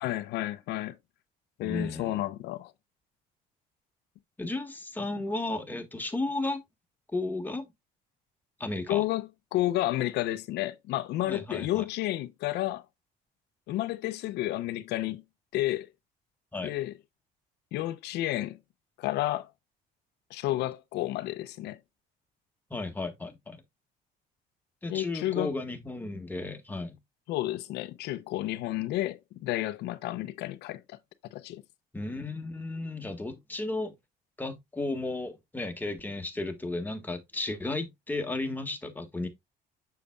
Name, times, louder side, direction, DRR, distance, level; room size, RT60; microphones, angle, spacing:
voice 1, 0.0-1.0 1.6-2.7 8.9-12.8 13.7-15.2 15.5-15.9 16.6-16.9 17.7-18.6 19.0-19.5 20.3-21.8 24.9-25.5 27.3-31.0 31.3-31.6, left 15 dB, 80° left, 0.7 m, -31 dB
voice 2, 1.6-2.2 4.4-6.6 7.1-7.7 8.6-9.0 11.2-11.8 16.5-16.7 22.7-23.6 24.8-27.0 31.9-33.9 34.4-39.3, left 2 dB, 10° left, 1.5 m, -34 dB
7.0 x 6.7 x 2.3 m
cardioid pair, 110°, 17 cm